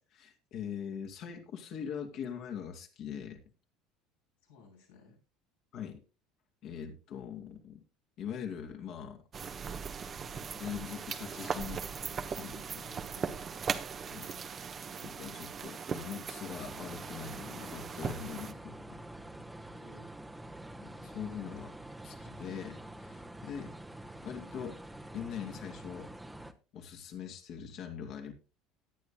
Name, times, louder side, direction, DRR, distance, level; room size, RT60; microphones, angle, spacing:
voice 1, 0.1-3.4 5.7-6.0 6.6-7.8 8.2-9.2 10.5-11.9 12.2-12.8 14.1-14.3 15.0-18.5 18.9-19.0 20.8-21.7 22.0-23.7 24.2-24.8 25.1-26.1 26.7-28.3, left 8 dB, 60° left, 4 dB, 2.5 m, -42 dB
voice 2, 4.4-5.2 12.5-13.3 19.6-20.1, left 1 dB, 85° left, -2 dB, 6.8 m, -58 dB
sound 1, 9.3-18.5, right 6 dB, 40° right, 1.0 m, -39 dB
sound 2, 16.5-26.5, right 1 dB, 5° right, 1.2 m, -47 dB
18.5 x 9.9 x 2.2 m, 0.29 s
hypercardioid pair, 75°, 0 cm